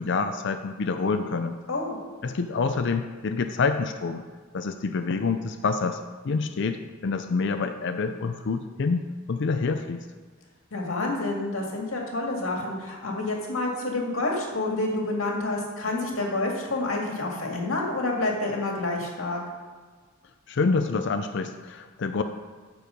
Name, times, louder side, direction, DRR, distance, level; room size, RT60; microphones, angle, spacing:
voice 1, 0.0-1.6 2.2-4.2 4.5-10.0 20.5-22.2, left 4 dB, 60° left, 8 dB, 0.5 m, -27 dB
voice 2, 1.7-2.0 10.7-19.4, left 2 dB, 85° left, 0 dB, 2.0 m, -28 dB
13.5 x 4.6 x 5.1 m, 1.5 s
head